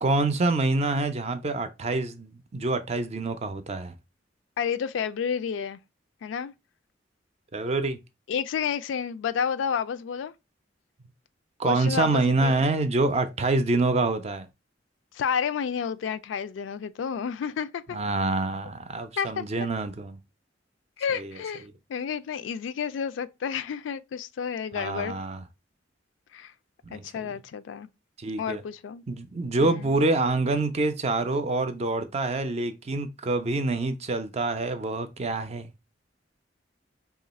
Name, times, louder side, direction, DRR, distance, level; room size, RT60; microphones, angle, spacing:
voice 1, 0.0-3.9 7.5-8.0 11.6-14.5 17.9-20.2 21.1-21.3 24.7-25.4 26.8-27.3 28.2-28.6 29.1-35.7, right 2 dB, 35° right, 0.4 m, -26 dB
voice 2, 4.6-5.8 6.2-6.5 8.3-10.3 11.6-12.5 15.1-18.0 19.2-19.4 21.0-21.6 21.9-25.2 26.3-26.5 26.9-27.9 28.4-29.0 29.6-29.9, left 7 dB, 80° left, 0.3 m, -30 dB
3.0 x 2.4 x 4.0 m
head